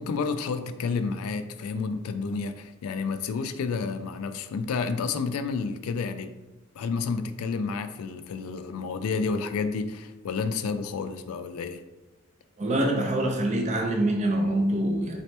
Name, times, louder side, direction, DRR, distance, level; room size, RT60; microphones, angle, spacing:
voice 1, 0.0-6.3 6.8-11.8, left 4 dB, 85° left, 0.3 m, -30 dB
voice 2, 12.6-15.2, right 1 dB, 35° right, 0.5 m, -25 dB
4.1 x 2.9 x 3.2 m
head